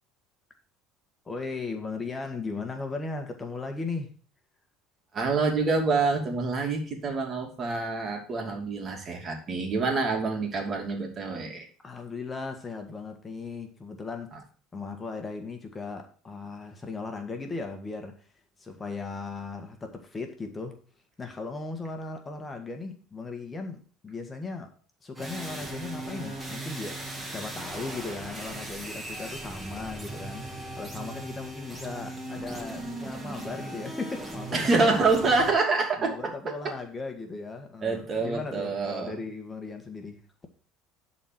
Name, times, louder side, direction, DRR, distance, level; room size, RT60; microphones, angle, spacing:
voice 1, 1.2-4.1 11.8-14.3 14.7-18.2 18.6-20.8 21.2-24.7 25.0-35.0 36.0-40.2, left 3 dB, 25° left, 1.6 m, -37 dB
voice 2, 5.1-11.7 14.3-14.4 34.5-36.7 37.8-39.2, right 3 dB, 40° right, 2.8 m, -27 dB
sound 1, 25.1-35.5, right 2 dB, 15° right, 2.8 m, -38 dB
11.0 x 4.3 x 6.0 m
supercardioid pair, 80°, 0 cm